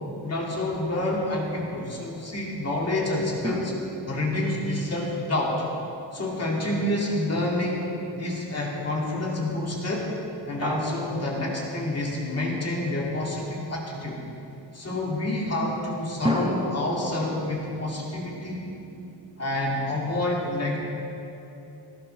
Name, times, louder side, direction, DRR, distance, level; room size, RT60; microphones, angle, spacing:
voice 1, 0.2-3.7 4.1-5.6 6.1-7.9 8.1-10.1 10.5-14.2 14.7-18.7 19.4-20.8, left 1 dB, 35° left, -3 dB, 2.4 m, -28 dB
sound 1, 3.4-6.8 10.6-12.6 16.2-19.3, equal, 10° right, 0.8 m, -35 dB
17.5 x 16.0 x 3.4 m, 2.9 s
wide cardioid pair, 155°, 45 cm